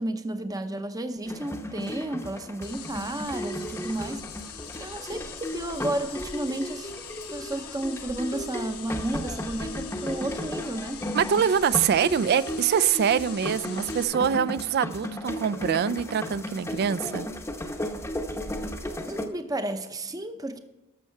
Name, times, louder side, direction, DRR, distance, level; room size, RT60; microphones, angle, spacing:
voice 1, 0.0-4.2 4.8-6.9 7.3-11.1 19.0-20.6, right 1 dB, 15° right, 0.6 m, -32 dB
sound 1, 1.3-19.3, equal, 10° left, 0.8 m, -35 dB
sound 2, 2.6-14.0, left 8 dB, 80° left, 1.0 m, -43 dB
voice 2, 11.1-17.3, right 7 dB, 45° right, 0.3 m, -24 dB
12.5 x 6.6 x 4.5 m
head